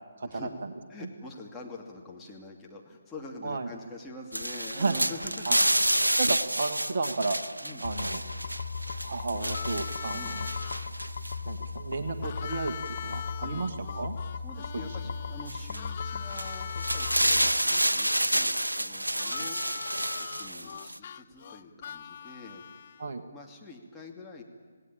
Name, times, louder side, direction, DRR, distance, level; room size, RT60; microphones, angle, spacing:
voice 1, 0.2-0.5 1.0-1.1 3.4-3.7 4.7-5.0 5.5-5.6 6.2-7.4 7.8-8.2 9.0-10.5 11.4-14.2 14.7-14.9 23.0-23.2, right 3 dB, 50° right, 7 dB, 1.7 m, -32 dB
voice 2, 0.9-5.6 7.6-7.9 10.1-10.3 13.4-13.7 14.4-19.6 20.1-22.6 23.3-24.4, left 2 dB, 10° left, -3 dB, 2.7 m, -45 dB
sound 1, 4.3-11.3 12.9-13.0 15.5-15.8 16.3-21.0, right 1 dB, 85° right, 0.8 m, -29 dB
sound 2, 7.8-17.5, left 4 dB, 55° left, 1.9 m, -37 dB
Harmonica, 9.4-10.8 12.2-17.2 19.2-23.1, left 8 dB, 40° left, 0.7 m, -41 dB
27.5 x 18.0 x 8.8 m, 1.5 s
figure-of-eight pair, 140°, 0 cm